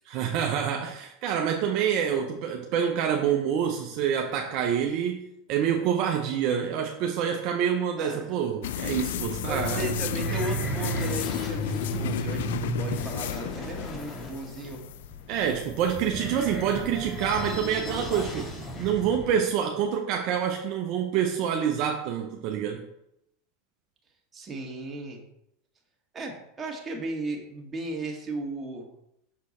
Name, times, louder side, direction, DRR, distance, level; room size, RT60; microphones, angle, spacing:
voice 1, 0.1-9.9 15.3-18.5 18.8-22.9, right 8 dB, 55° right, 3 dB, 0.7 m, -27 dB
voice 2, 8.0-8.4 9.5-14.8 24.3-25.2 26.1-28.9, right 1 dB, 25° right, 1 dB, 1.6 m, -36 dB
sound 1, 8.6-18.8, left 12 dB, 75° left, 0.3 m, -35 dB
sound 2, 8.9-19.4, right 1 dB, 30° left, 1.6 m, -34 dB
6.3 x 4.4 x 4.2 m, 0.79 s
hypercardioid pair, 105°, 0 cm